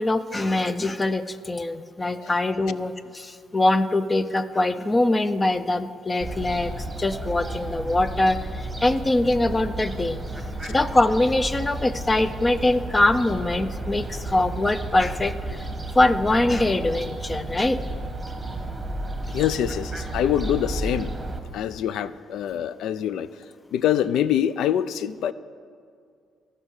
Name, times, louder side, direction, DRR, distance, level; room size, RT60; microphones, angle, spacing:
voice 1, 0.0-10.2 10.7-15.6 15.9-17.8, left 2 dB, 20° left, 12 dB, 0.5 m, -23 dB
Fowl, 6.2-21.4, right 2 dB, 10° right, 1.3 m, -32 dB
voice 2, 19.3-21.1 21.5-23.3 23.7-25.3, left 10 dB, 80° left, 16 dB, 0.3 m, -25 dB
14.5 x 5.5 x 6.4 m, 2.2 s
cardioid pair, 90°, 0 cm